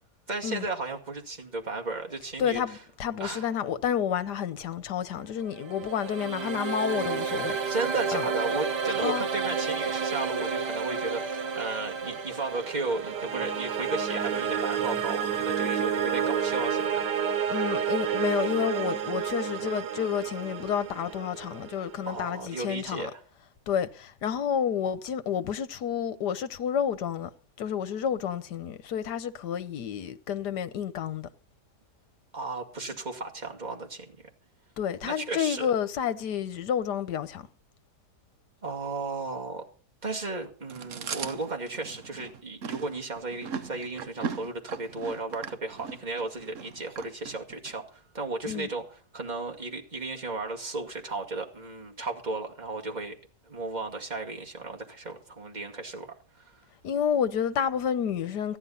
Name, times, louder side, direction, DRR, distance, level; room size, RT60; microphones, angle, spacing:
voice 1, 0.3-2.8 3.2-3.5 7.6-17.1 22.1-23.2 32.3-34.1 35.0-35.7 38.6-39.6 40.0-53.2 53.5-56.6, right 3 dB, 25° right, 2.2 m, -35 dB
voice 2, 2.4-7.6 8.1-8.2 9.0-9.3 17.5-23.1 23.7-27.3 27.6-31.3 34.8-37.5 48.4-48.7 56.8-58.6, left 8 dB, 75° left, 1.5 m, -30 dB
sound 1, 5.4-22.5, right 7 dB, 85° right, 1.7 m, -30 dB
Chewing mastication, 40.7-47.7, right 6 dB, 55° right, 1.3 m, -38 dB
14.5 x 10.5 x 5.6 m
omnidirectional pair, 1.8 m